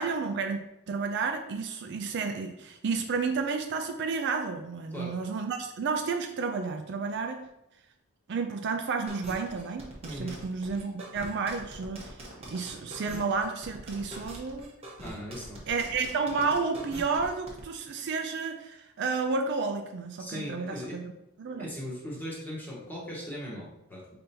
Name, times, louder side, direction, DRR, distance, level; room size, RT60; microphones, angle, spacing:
voice 1, 0.0-7.4 8.3-14.7 15.7-21.1 21.4-21.7, right 4 dB, 55° right, 5 dB, 0.4 m, -31 dB
sound 1, 9.1-17.6, right 1 dB, 30° right, 0.9 m, -43 dB
voice 2, 10.1-10.4 15.0-15.6 20.2-21.0 21.6-24.2, equal, 10° left, -5 dB, 1.2 m, -39 dB
5.2 x 3.3 x 2.8 m, 0.86 s
head